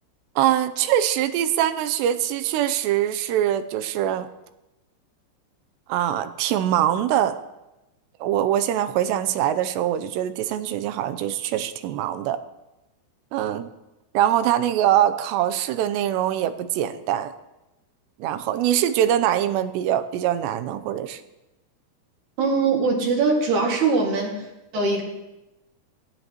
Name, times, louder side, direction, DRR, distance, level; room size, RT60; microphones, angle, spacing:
voice 1, 0.4-4.3 5.9-7.4 8.2-12.4 13.3-13.7 14.1-17.3 18.2-21.2, right 11 dB, 85° right, 11 dB, 2.8 m, -23 dB
voice 2, 22.4-24.4 24.7-25.0, right 4 dB, 50° right, 0 dB, 3.1 m, -21 dB
18.0 x 15.0 x 3.0 m, 0.99 s
omnidirectional pair, 5.0 m